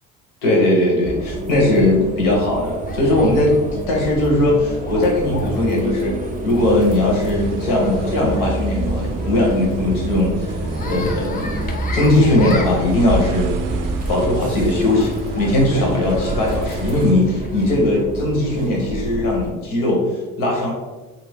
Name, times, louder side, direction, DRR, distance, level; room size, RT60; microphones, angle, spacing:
voice 1, 0.4-3.6 3.9-6.2 6.4-11.5 11.9-13.5 14.1-20.1 20.4-20.7, left 1 dB, 85° left, -2 dB, 1.1 m, -19 dB
sound 1, 1.0-19.5, right 2 dB, 25° right, 0.4 m, -29 dB
sound 2, 2.8-17.8, left 2 dB, 25° left, 0.5 m, -34 dB
sound 3, 6.6-17.1, right 3 dB, 80° right, 0.5 m, -31 dB
2.6 x 2.5 x 3.4 m, 1.2 s
cardioid pair, 85°, 32 cm